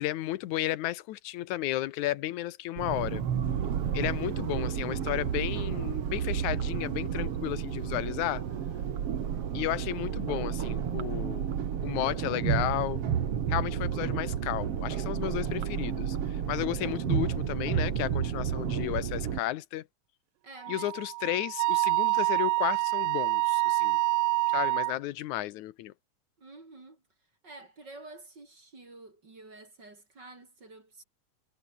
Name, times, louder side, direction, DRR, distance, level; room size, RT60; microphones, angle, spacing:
voice 1, 0.0-3.2 3.9-8.4 9.5-11.5 11.8-13.0 13.5-19.9 20.7-24.0 24.5-25.9, left 15 dB, 70° left, 2.0 m, -33 dB
sound 1, 2.8-19.4, right 8 dB, 50° right, 2.3 m, -31 dB
voice 2, 20.4-20.9 26.4-27.0 27.4-31.0, right 2 dB, 30° right, 4.2 m, -49 dB
Wind instrument woodwind instrument, 20.6-25.0, right 20 dB, 80° right, 1.9 m, -27 dB
omnidirectional pair, 4.1 m